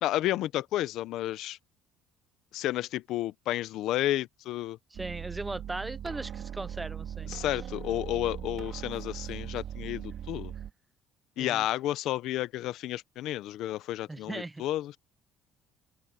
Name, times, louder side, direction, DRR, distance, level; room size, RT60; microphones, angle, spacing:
voice 1, 0.0-1.6 2.5-4.8 7.3-10.5 11.4-15.0, left 14 dB, 60° left, 0.7 m, -31 dB
voice 2, 4.9-7.3 11.4-11.6 14.1-14.6, right 2 dB, 10° right, 0.5 m, -38 dB
sound 1, 4.9-10.7, right 9 dB, 45° right, 2.5 m, -39 dB
open air
cardioid pair, 160°, 0 cm